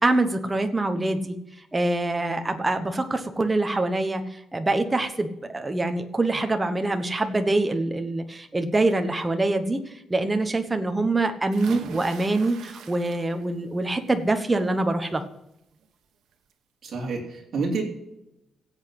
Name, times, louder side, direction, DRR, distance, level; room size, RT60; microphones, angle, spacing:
voice 1, 0.0-1.3 1.7-9.8 10.1-15.2, right 2 dB, 10° right, 6 dB, 1.0 m, -25 dB
sound 1, 11.5-13.6 14.0-14.4 15.8-15.9 16.3-16.4, right 7 dB, 75° right, 1.4 m, -43 dB
voice 2, 16.8-17.8, right 4 dB, 40° right, -2 dB, 3.5 m, -28 dB
16.5 x 8.1 x 5.9 m, 0.87 s
wide cardioid pair, 180°, 0 cm